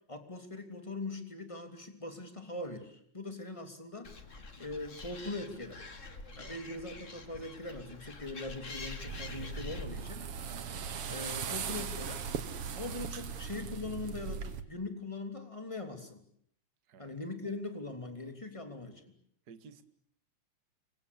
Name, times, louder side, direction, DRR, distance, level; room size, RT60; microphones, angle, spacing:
voice 1, 0.1-4.1 4.6-5.9 6.4-10.3 10.6-10.8 11.1-12.3 12.7-16.2 17.0-19.1, left 2 dB, 10° left, 6 dB, 2.9 m, -41 dB
Animal, 4.0-9.8, left 3 dB, 30° left, 2.2 m, -46 dB
sound 1, 9.1-14.6, right 6 dB, 55° right, 2.3 m, -39 dB
voice 2, 19.5-19.8, right 6 dB, 40° right, 9 dB, 1.9 m, -53 dB
29.0 x 24.0 x 8.4 m, 0.69 s
omnidirectional pair, 3.4 m